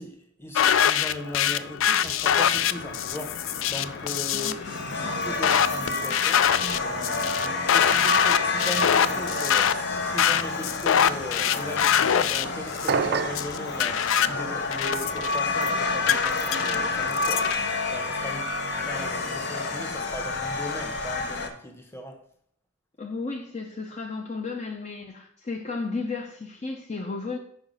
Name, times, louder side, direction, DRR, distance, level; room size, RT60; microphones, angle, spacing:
voice 1, 0.0-6.5 6.8-17.5 17.9-22.2, left 1 dB, 10° left, 3 dB, 1.1 m, -38 dB
sound 1, 0.5-17.6, left 9 dB, 75° left, 0.4 m, -25 dB
sound 2, 2.2-21.5, left 3 dB, 60° left, 1.0 m, -29 dB
voice 2, 4.3-5.4 23.0-27.4, left 3 dB, 35° left, 1 dB, 0.6 m, -34 dB
sound 3, 12.9-13.5, right 6 dB, 55° right, 0.4 m, -25 dB
5.8 x 4.8 x 5.3 m, 0.65 s
head